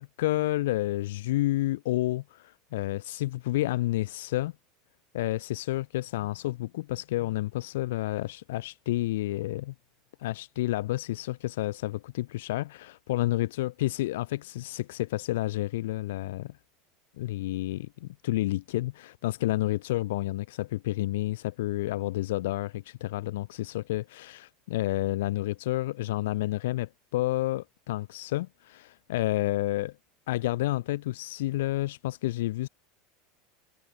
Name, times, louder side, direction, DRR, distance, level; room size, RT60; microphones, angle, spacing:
voice 1, 0.0-4.5 5.1-9.7 10.2-16.5 17.2-29.9 30.3-32.7, left 16 dB, 85° left, 0.7 m, -30 dB
supercardioid pair, 160°, 0 cm